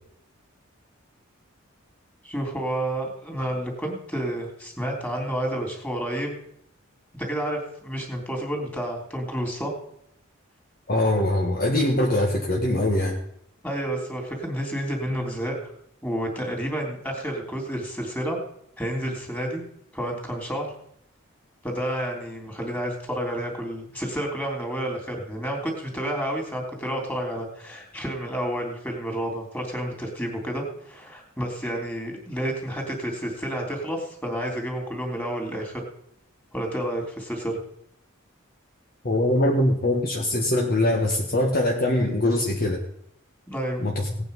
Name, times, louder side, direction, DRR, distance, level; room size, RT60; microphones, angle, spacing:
voice 1, 2.2-6.3 7.2-9.8 13.6-15.7 16.0-18.4 18.8-19.6 19.9-20.7 21.6-35.8 36.5-37.6 43.5-43.9, right 1 dB, 10° left, 1 dB, 3.4 m, -30 dB
voice 2, 10.9-13.2 39.0-42.8 43.8-44.1, left 1 dB, 45° left, 0 dB, 1.6 m, -22 dB
17.5 x 9.2 x 5.4 m, 0.73 s
head